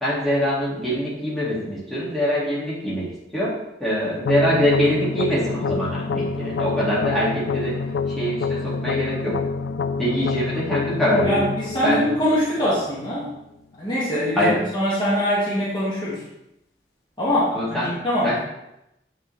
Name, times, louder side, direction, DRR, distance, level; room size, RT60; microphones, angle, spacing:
voice 1, 0.0-3.5 3.8-7.8 8.1-9.4 10.0-11.4 11.8-12.0 14.4-14.6 17.5-17.9 18.2-18.4, equal, ahead, -8 dB, 2.1 m, -23 dB
sound 1, 4.2-13.2, left 5 dB, 75° left, 0.3 m, -27 dB
voice 2, 11.2-13.3 13.8-16.2 17.2-18.4, equal, 25° left, -8 dB, 1.8 m, -23 dB
8.1 x 5.3 x 3.2 m, 0.87 s
head